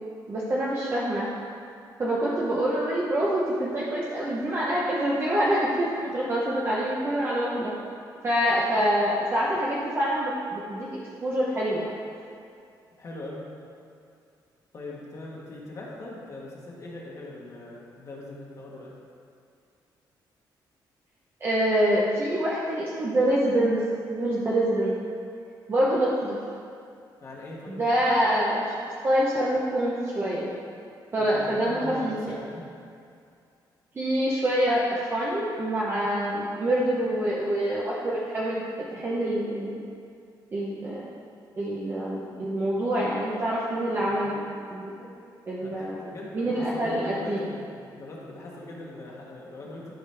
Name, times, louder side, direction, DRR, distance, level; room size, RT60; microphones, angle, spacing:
voice 1, 0.3-1.3 2.0-7.7 8.2-11.9 21.4-23.8 24.1-24.9 25.7-26.4 27.7-28.7 29.0-30.5 31.1-32.4 34.0-38.6 38.9-39.8 40.5-41.0 41.6-45.1 45.5-46.0 46.3-47.5, right 1 dB, 30° right, -5 dB, 0.8 m, -26 dB
voice 2, 13.0-13.4 14.7-18.9 27.2-27.8 31.2-32.7 43.9-44.2 45.6-49.9, left 2 dB, 40° left, -4 dB, 1.3 m, -41 dB
11.5 x 5.1 x 3.3 m, 2.4 s
cardioid pair, 150°, 8 cm